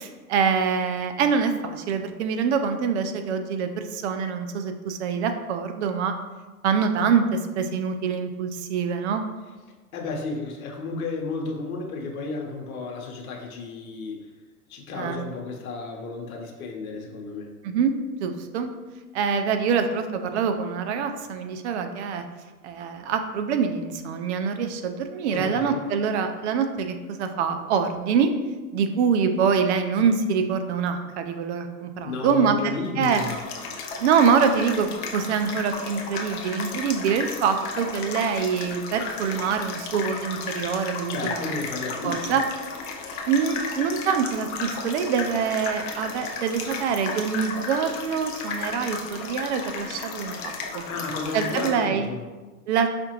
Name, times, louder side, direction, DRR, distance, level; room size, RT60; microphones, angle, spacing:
voice 1, 0.0-6.1 6.6-9.3 14.9-15.2 17.6-17.9 18.2-18.7 19.1-22.2 22.6-28.3 28.7-33.2 34.0-41.5 42.0-42.4 43.3-50.8 51.3-52.1 52.7-52.9, right 6 dB, 50° right, 7 dB, 0.5 m, -25 dB
voice 2, 9.9-14.3 14.7-17.5 25.3-25.8 32.0-33.4 41.1-42.4 50.9-52.2, left 3 dB, 65° left, 1 dB, 0.9 m, -33 dB
sound 1, 33.0-51.7, left 4 dB, 30° left, 0.5 m, -34 dB
4.9 x 2.5 x 2.9 m, 1.2 s
hypercardioid pair, 105°, 46 cm